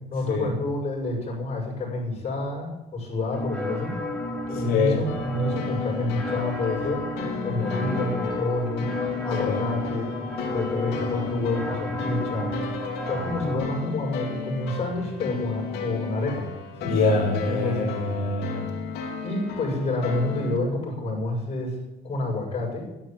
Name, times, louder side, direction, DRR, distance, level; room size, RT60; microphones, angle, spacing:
voice 1, 0.1-3.9 4.5-7.1 7.4-8.9 9.2-10.1 10.5-12.5 13.1-16.5 16.8-16.9 17.4-17.9 19.2-21.8 22.0-22.9, left 2 dB, 40° left, -1 dB, 7.5 m, -28 dB
sound 1, 3.3-13.6, left 2 dB, 5° left, 5.2 m, -32 dB
voice 2, 4.6-5.0 7.6-7.9 9.4-9.6 16.9-18.6, left 3 dB, 60° left, -1 dB, 3.1 m, -25 dB
sound 2, 5.1-20.6, left 5 dB, 85° left, 3.0 m, -34 dB
12.5 x 12.0 x 7.7 m, 0.99 s
cardioid pair, 110°, 17 cm